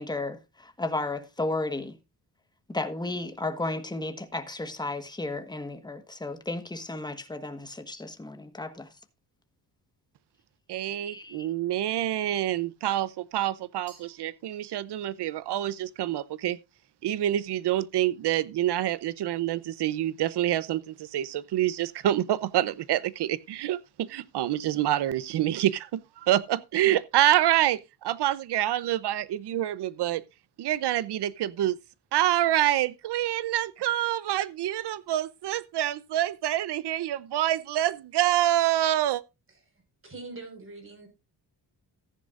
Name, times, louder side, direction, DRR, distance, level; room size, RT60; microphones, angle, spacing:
voice 1, 0.0-2.0 2.7-8.9 11.0-11.5, left 2 dB, 10° left, 1.4 m, -33 dB
voice 2, 10.7-16.6 17.0-30.2 30.6-31.8 32.1-39.2, right 13 dB, 75° right, 0.8 m, -27 dB
Glass, 13.9-15.1, right 5 dB, 55° right, 5.4 m, -57 dB
voice 3, 39.5-41.1, right 3 dB, 30° right, 5.1 m, -44 dB
14.5 x 10.5 x 2.5 m
cardioid pair, 115°, 41 cm